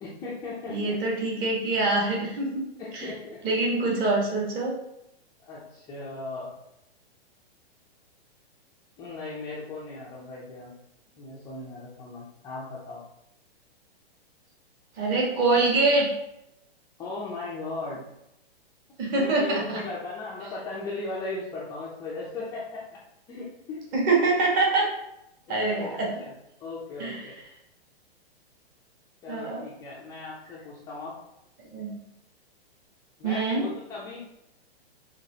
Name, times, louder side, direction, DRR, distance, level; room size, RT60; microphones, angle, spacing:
voice 1, 0.0-1.0 1.4-1.5 2.8-3.4 3.8-4.1 5.4-6.5 9.0-10.7 11.2-13.0 17.0-18.0 19.1-23.0 23.3-23.9 25.5-26.3 26.6-27.4 29.2-31.2 33.2-34.2, left 3 dB, 10° left, -7 dB, 0.4 m, -37 dB
voice 2, 0.7-2.6 2.9-3.1 3.4-4.7 15.0-16.1 19.0-19.8 23.9-24.9 25.5-26.1 27.0-27.2 29.3-29.6 31.7-31.9 33.2-33.7, right 3 dB, 30° right, -2 dB, 1.3 m, -24 dB
5.8 x 3.1 x 2.7 m, 0.84 s
hypercardioid pair, 140°, 31 cm